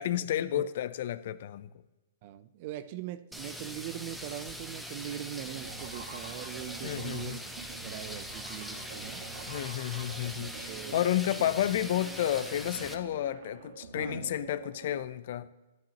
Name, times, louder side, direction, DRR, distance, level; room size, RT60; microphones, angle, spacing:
voice 1, 0.0-1.7 6.8-7.4 9.5-15.5, left 11 dB, 60° left, 0.5 m, -31 dB
voice 2, 2.2-9.2 10.3-11.5 14.0-14.4, right 12 dB, 45° right, 0.4 m, -42 dB
sound 1, 3.3-12.9, equal, ahead, 0.7 m, -42 dB
sound 2, 5.5-15.0, right 5 dB, 75° right, 1.6 m, -46 dB
11.5 x 10.5 x 2.9 m
hypercardioid pair, 140°, 0 cm